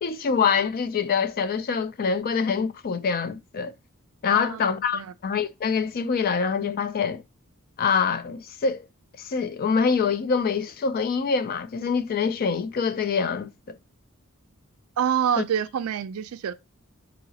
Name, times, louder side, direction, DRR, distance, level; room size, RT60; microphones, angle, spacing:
voice 1, 0.0-3.7 4.2-7.2 7.8-8.8 9.2-13.5 15.4-15.5, left 6 dB, 45° left, 0.3 m, -25 dB
voice 2, 4.3-5.1 15.0-16.5, right 8 dB, 70° right, 0.4 m, -27 dB
3.9 x 2.8 x 2.7 m
head